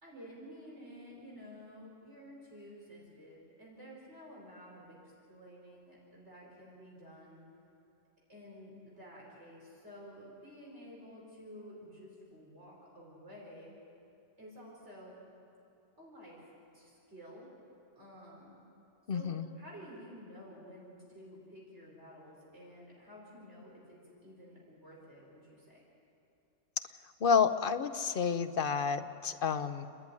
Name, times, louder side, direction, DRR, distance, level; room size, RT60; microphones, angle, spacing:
voice 1, 0.0-7.5 8.3-13.7 14.4-15.2 16.0-16.4 16.7-17.5 17.9-18.6 19.1-19.3 19.5-25.8, equal, 65° right, -4 dB, 5.1 m, -52 dB
voice 2, 19.1-19.5 27.2-29.9, left 6 dB, 50° left, 9 dB, 1.0 m, -30 dB
29.5 x 11.0 x 9.7 m, 2.6 s
omnidirectional pair, 1.3 m